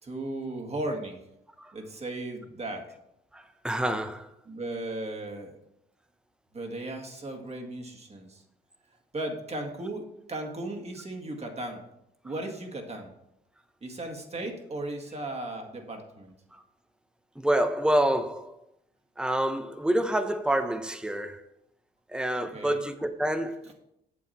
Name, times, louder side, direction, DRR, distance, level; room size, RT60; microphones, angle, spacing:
voice 1, 0.0-1.2 1.7-2.9 4.5-5.5 6.5-8.4 9.1-11.8 12.2-13.1 13.8-16.3 22.5-22.8, right 2 dB, 30° right, 1.9 m, -36 dB
voice 2, 3.3-4.3 16.5-16.6 17.3-18.6 19.2-21.4 22.1-23.7, right 1 dB, 5° right, 0.8 m, -27 dB
8.5 x 7.1 x 4.3 m
cardioid pair, 90°, 20 cm